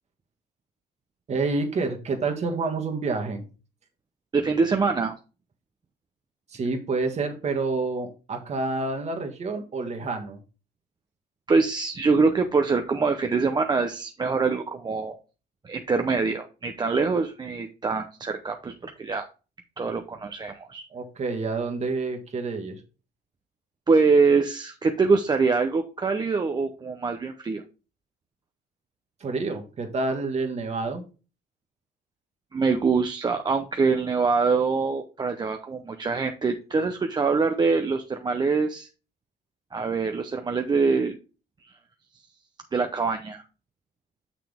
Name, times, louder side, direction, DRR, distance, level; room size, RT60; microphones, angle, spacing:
voice 1, 1.3-3.4 6.5-10.4 20.9-22.8 29.2-31.0, right 3 dB, 40° right, 5 dB, 1.7 m, -28 dB
voice 2, 4.3-5.1 11.5-15.1 15.6-19.3 19.8-20.8 23.9-27.6 32.5-38.9 39.7-41.2 41.6-41.7 42.7-43.4, right 4 dB, 25° right, 5 dB, 0.7 m, -24 dB
6.7 x 6.0 x 3.5 m, 0.33 s
cardioid pair, 110°, 17 cm